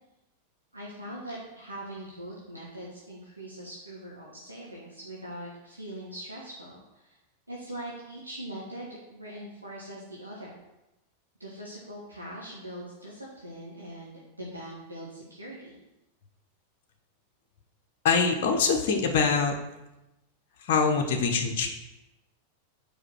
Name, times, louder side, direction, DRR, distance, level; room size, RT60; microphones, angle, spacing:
voice 1, 0.7-7.2 7.5-10.5 11.4-15.8, right 1 dB, 85° right, -5 dB, 1.3 m, -42 dB
voice 2, 18.0-19.5 20.7-21.7, left 5 dB, 50° left, 2 dB, 0.9 m, -24 dB
5.0 x 4.9 x 6.3 m, 0.97 s
figure-of-eight pair, 90°, 0 cm